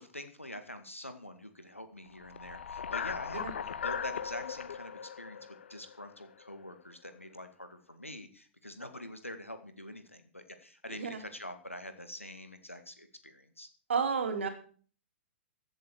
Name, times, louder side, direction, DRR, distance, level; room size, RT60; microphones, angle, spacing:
voice 1, 0.0-13.7, left 1 dB, 90° left, 9 dB, 2.0 m, -45 dB
sound 1, 2.2-6.5, left 7 dB, 60° left, 0.7 m, -38 dB
voice 2, 13.9-14.5, right 5 dB, 65° right, 5 dB, 3.1 m, -31 dB
15.5 x 7.6 x 6.6 m, 0.42 s
figure-of-eight pair, 110°, 7 cm